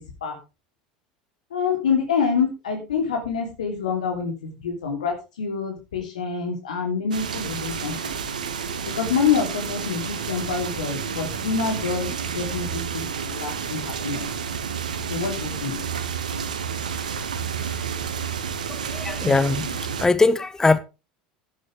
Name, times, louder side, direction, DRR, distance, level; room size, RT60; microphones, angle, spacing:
voice 1, 1.5-7.9 8.9-14.3 15.1-15.8, left 6 dB, 70° left, 3.1 m, -26 dB
sound 1, 7.1-20.1, right 7 dB, 75° right, 1.6 m, -30 dB
voice 2, 19.0-19.6 20.0-20.8, left 3 dB, 15° left, 1.2 m, -19 dB
12.5 x 11.0 x 3.4 m
figure-of-eight pair, 75°, 4 cm